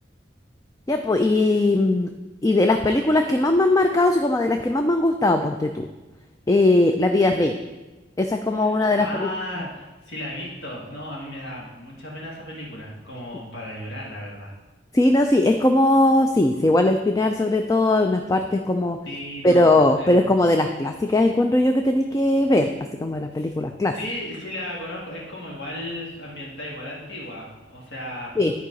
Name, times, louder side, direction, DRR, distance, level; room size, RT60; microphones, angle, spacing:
voice 1, 0.9-2.1 2.4-5.9 6.5-7.5 8.2-9.3 14.9-19.0 19.4-22.7 23.0-23.9 28.4-28.5, left 2 dB, 15° left, 5 dB, 0.3 m, -19 dB
voice 2, 8.5-14.5 19.1-20.3 23.4-23.5 23.9-28.3, left 1 dB, 65° left, -4 dB, 1.9 m, -35 dB
10.0 x 4.7 x 5.2 m, 1.1 s
head